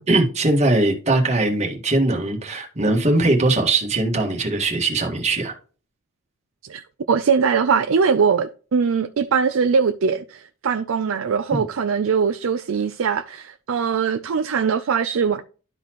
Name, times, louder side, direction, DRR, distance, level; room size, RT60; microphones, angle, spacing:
voice 1, 0.1-5.5 11.5-11.6, right 2 dB, 30° right, 1.7 m, -20 dB
voice 2, 6.6-15.4, right 6 dB, 70° right, 0.5 m, -21 dB
12.5 x 4.1 x 3.0 m
head